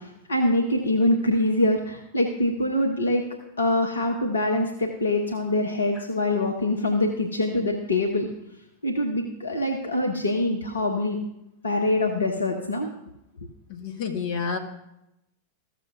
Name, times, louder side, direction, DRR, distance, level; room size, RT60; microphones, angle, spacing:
voice 1, 0.0-3.2 3.6-8.3 8.8-11.2 11.6-12.9, left 1 dB, 75° left, 2 dB, 0.8 m, -24 dB
voice 2, 13.7-14.6, left 5 dB, 50° left, 3 dB, 1.3 m, -29 dB
14.5 x 6.7 x 2.5 m, 0.84 s
figure-of-eight pair, 90°, 0 cm